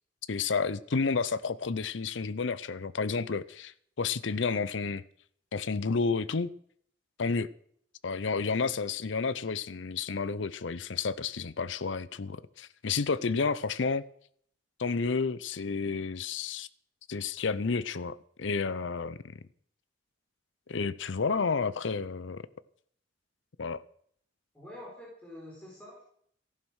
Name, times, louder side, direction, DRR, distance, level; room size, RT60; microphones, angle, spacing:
voice 1, 0.3-5.0 5.5-6.5 7.2-7.5 8.0-14.0 14.8-16.7 17.1-19.4 20.7-22.4 23.6-23.8, left 4 dB, 70° left, 0.6 m, -31 dB
voice 2, 24.5-26.0, left 1 dB, 5° left, 4.5 m, -46 dB
14.5 x 11.5 x 6.3 m
head